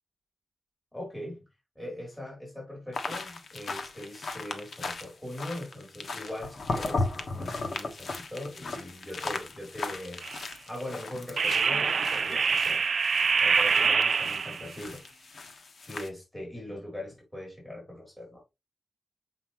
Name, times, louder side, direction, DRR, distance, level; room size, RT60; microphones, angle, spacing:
voice 1, 0.9-1.5 1.8-10.2 10.7-12.8 13.4-15.0 15.8-18.4, left 1 dB, 10° left, 4.2 m, -40 dB
sound 1, 2.9-16.1, left 3 dB, 65° left, 1.2 m, -37 dB
sound 2, 10.2-10.5 11.4-14.7, right 5 dB, 65° right, 0.3 m, -25 dB
6.9 x 5.5 x 3.1 m
wide cardioid pair, 125°, 0 cm